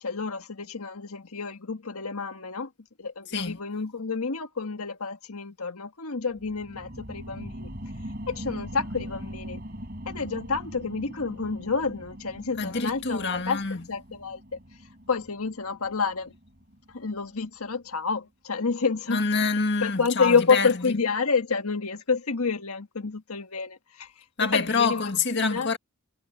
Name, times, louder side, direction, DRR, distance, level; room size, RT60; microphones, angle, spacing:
voice 1, 0.0-2.7 3.0-7.7 8.3-9.6 10.1-13.6 13.9-14.6 15.1-16.3 16.9-19.2 19.8-24.1 24.4-25.7, left 5 dB, 85° left, 1.6 m, -29 dB
voice 2, 3.3-3.6 12.6-13.8 19.1-21.0 24.4-25.8, left 4 dB, 50° left, 1.9 m, -27 dB
sound 1, 6.3-17.4 17.9-18.0, equal, 40° right, 5.5 m, -41 dB
head